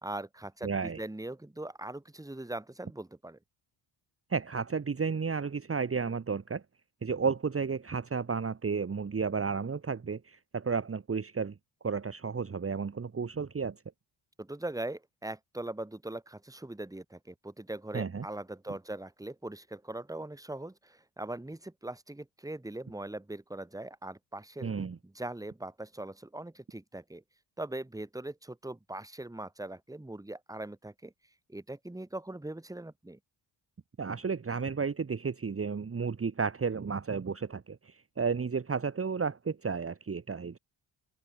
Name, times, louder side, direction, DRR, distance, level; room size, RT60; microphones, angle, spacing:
voice 1, 0.0-3.4 14.4-24.7 25.0-27.2 27.6-31.1 31.5-33.2, right 1 dB, 5° right, 2.1 m, -41 dB
voice 2, 0.6-1.0 4.3-6.6 7.0-11.5 11.8-13.8 17.9-18.3 24.6-25.0 34.0-40.6, right 5 dB, 30° right, 1.5 m, -32 dB
open air
cardioid pair, 100°, 46 cm